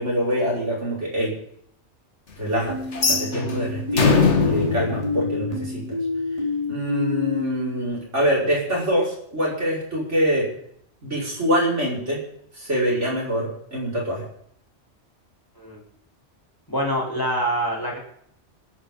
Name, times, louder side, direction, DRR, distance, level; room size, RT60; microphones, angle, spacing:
voice 1, 0.0-1.3 2.4-2.8 3.1-6.0 6.7-10.5 11.0-12.2 12.5-14.2, equal, 80° right, -5 dB, 6.3 m, -25 dB
sound 1, 2.7-7.8, left 3 dB, 25° right, 4.3 m, -28 dB
sound 2, 2.9-6.0, left 4 dB, 75° left, 2.0 m, -22 dB
voice 2, 16.7-18.0, equal, 20° left, -2 dB, 4.5 m, -25 dB
26.5 x 9.6 x 4.0 m, 0.67 s
omnidirectional pair, 1.2 m